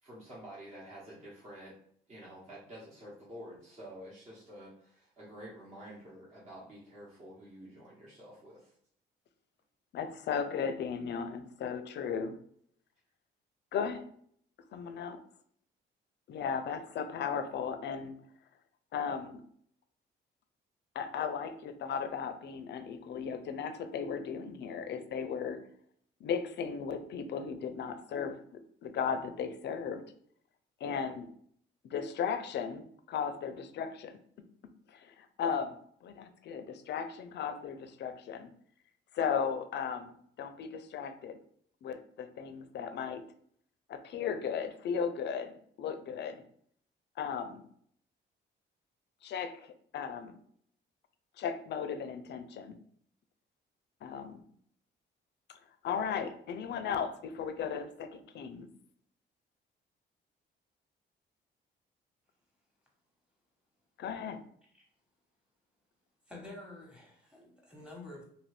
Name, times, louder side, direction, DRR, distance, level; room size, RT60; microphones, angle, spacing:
voice 1, 0.0-1.8 2.1-8.7, equal, 35° right, -7 dB, 1.1 m, -49 dB
voice 2, 9.9-12.4 13.7-14.0 14.7-15.2 16.3-18.2 18.9-19.4 20.9-25.6 26.2-28.4 28.8-30.0 30.8-31.3 31.9-34.2 34.9-38.5 39.1-41.4 41.8-43.2 43.9-46.4 47.2-47.6 49.2-50.4 51.4-52.8 54.0-54.4 55.5-55.6 55.8-58.7 64.0-64.4, left 7 dB, 60° left, 10 dB, 0.5 m, -36 dB
voice 3, 66.3-68.3, left 2 dB, 5° right, -1 dB, 1.2 m, -48 dB
2.7 x 2.6 x 3.2 m, 0.63 s
cardioid pair, 90°, 20 cm